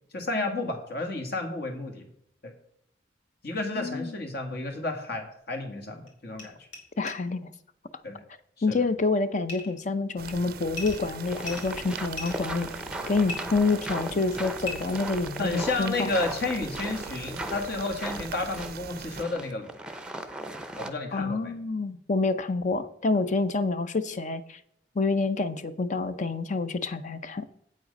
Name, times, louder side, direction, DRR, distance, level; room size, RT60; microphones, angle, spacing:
voice 1, 0.1-2.1 2.4-2.5 3.4-6.7 8.0-8.2 8.6-8.8 15.4-19.7 20.8-21.6, left 2 dB, 60° left, 4 dB, 1.9 m, -31 dB
voice 2, 3.8-4.1 7.0-7.5 8.6-12.7 13.1-16.1 21.1-24.6 25.0-27.5, left 3 dB, 45° left, 12 dB, 0.6 m, -27 dB
sound 1, 6.1-6.2 6.3-6.4 6.7-6.8 7.1-7.2 9.5-9.7 10.7-11.0 11.4-12.4 13.3-13.4 14.6-14.7, left 2 dB, 85° left, 2.8 m, -37 dB
sound 2, 10.2-19.2, right 6 dB, 55° right, 0.4 m, -41 dB
sound 3, 11.1-20.9, right 1 dB, 5° right, 0.6 m, -38 dB
8.2 x 7.5 x 5.3 m, 0.72 s
head